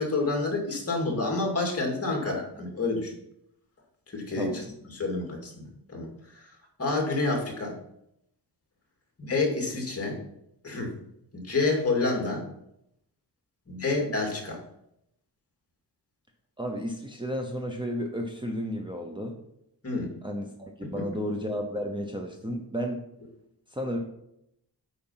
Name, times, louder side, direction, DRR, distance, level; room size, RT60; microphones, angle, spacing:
voice 1, 0.0-3.1 4.1-4.6 4.9-6.5 6.8-7.8 9.2-10.2 10.6-10.9 11.3-12.4 13.7-14.6 19.8-20.1 20.8-20.9, left 3 dB, 35° left, 1 dB, 2.3 m, -28 dB
voice 2, 4.3-4.7 16.6-19.4 20.2-23.0 23.7-24.0, equal, 10° right, 2 dB, 0.9 m, -33 dB
8.8 x 5.1 x 5.7 m, 0.79 s
wide cardioid pair, 150°, 40 cm